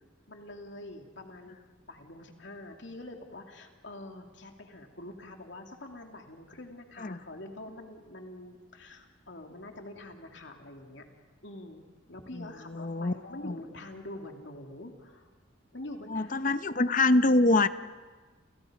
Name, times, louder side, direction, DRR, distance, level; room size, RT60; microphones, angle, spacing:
voice 1, 0.3-1.6 1.9-11.0 11.4-11.8 12.1-15.3 15.7-16.9, left 1 dB, 70° left, 3 dB, 2.9 m, -45 dB
voice 2, 12.4-13.1 13.4-13.5 16.1-17.7, left 2 dB, 45° left, 12 dB, 0.8 m, -25 dB
30.0 x 29.5 x 5.2 m, 1.4 s
head